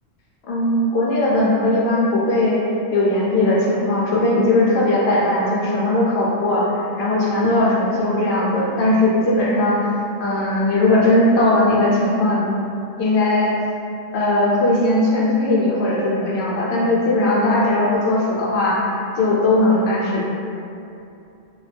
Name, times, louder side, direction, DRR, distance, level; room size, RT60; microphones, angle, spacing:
voice 1, 0.5-2.7 2.9-9.9 10.2-12.5 13.0-13.6 14.1-18.9 19.2-20.3, left 1 dB, 60° left, -5 dB, 0.8 m, -18 dB
2.3 x 2.1 x 3.2 m, 2.6 s
omnidirectional pair, 1.3 m